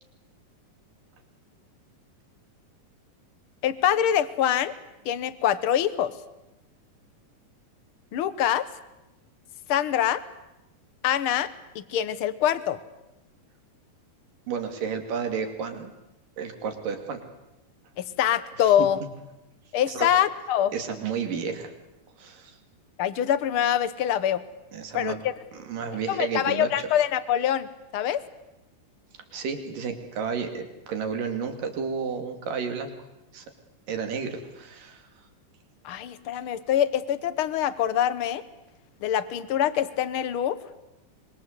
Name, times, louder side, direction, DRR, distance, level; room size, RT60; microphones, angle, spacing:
voice 1, 3.6-4.7 5.0-6.1 8.1-8.7 9.7-10.2 11.0-11.5 11.7-12.8 18.0-19.0 19.7-20.7 23.0-24.4 24.9-25.3 26.1-27.7 27.9-28.2 35.8-38.4 39.0-40.6, left 10 dB, 75° left, 14 dB, 1.2 m, -24 dB
voice 2, 14.5-15.9 16.4-17.2 19.9-20.1 20.7-21.7 22.2-22.6 24.7-25.2 25.5-26.9 29.3-32.9 33.3-33.4 33.9-35.0, right 6 dB, 80° right, 6 dB, 4.3 m, -31 dB
25.0 x 23.5 x 8.1 m, 0.95 s
omnidirectional pair, 3.8 m